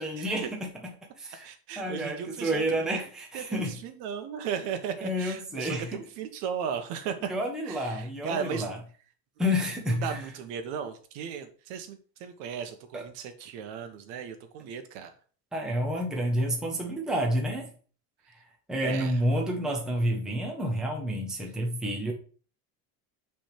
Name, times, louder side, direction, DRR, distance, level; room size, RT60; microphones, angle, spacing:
voice 1, 0.0-1.5 1.8-3.8 5.0-6.0 7.2-8.8 9.4-10.3 12.9-13.0 15.5-17.7 18.3-18.4 18.7-22.1, equal, ahead, 0.7 m, -30 dB
voice 2, 1.4-2.6 3.3-7.1 7.7-8.7 10.0-15.1 18.8-19.2, right 7 dB, 65° right, 1.2 m, -36 dB
6.0 x 3.5 x 5.8 m
cardioid pair, 175°, 45 cm